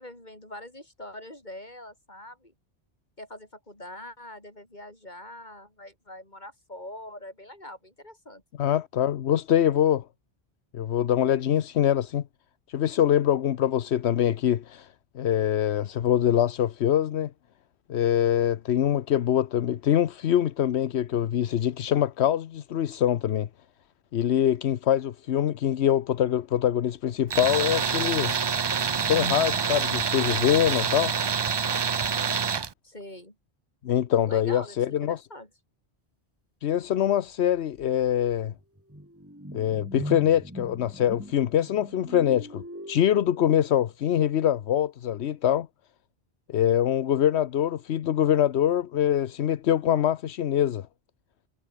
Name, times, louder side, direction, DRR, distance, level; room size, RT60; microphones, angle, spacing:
voice 1, 0.0-2.5 3.2-8.4 32.8-33.4 34.3-35.5, left 1 dB, 45° left, 6.0 m, -43 dB
voice 2, 8.6-10.0 10.7-12.2 12.7-14.9 15.1-17.3 17.9-23.5 24.1-28.3 29.1-31.1 33.8-35.2 36.6-38.5 39.5-45.7 46.5-50.9, left 10 dB, 80° left, 1.0 m, -24 dB
Tools, 27.3-32.7, right 6 dB, 40° right, 0.3 m, -26 dB
sound 1, 37.3-37.4 37.8-43.9, equal, 10° right, 5.4 m, -41 dB
omnidirectional pair, 1.1 m